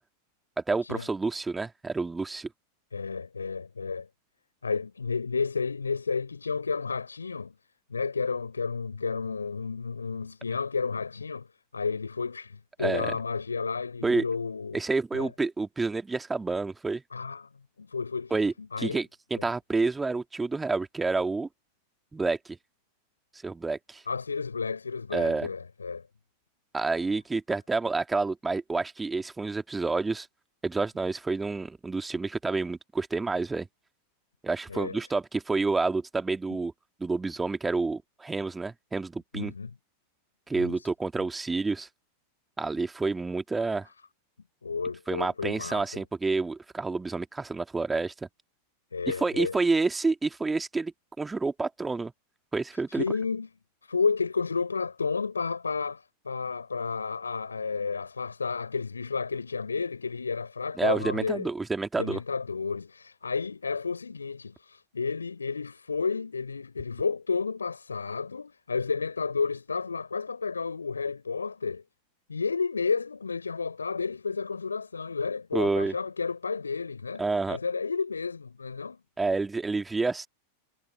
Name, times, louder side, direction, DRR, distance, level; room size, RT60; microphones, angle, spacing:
voice 1, 0.6-2.5 12.8-13.2 14.0-14.2 14.7-17.0 18.3-21.5 22.1-22.6 23.4-24.0 25.1-25.5 26.7-30.3 30.6-33.7 34.4-36.7 37.0-39.5 40.5-41.9 42.6-43.9 45.1-48.3 49.1-52.1 52.5-53.0 60.8-62.2 75.5-75.9 77.2-77.6 79.2-80.3, right 3 dB, 10° right, 2.3 m, -29 dB
voice 2, 2.9-4.1 4.6-7.5 7.9-11.5 11.7-14.8 15.1-15.3 17.1-17.5 17.8-18.3 18.6-19.0 19.3-19.5 24.1-26.0 34.7-35.0 39.3-39.7 40.5-40.9 44.6-46.0 48.9-49.6 52.9-53.5 53.8-61.5 62.0-71.8 72.3-77.2 77.5-79.0, left 5 dB, 75° left, 4.8 m, -31 dB
figure-of-eight pair, 90°, 0 cm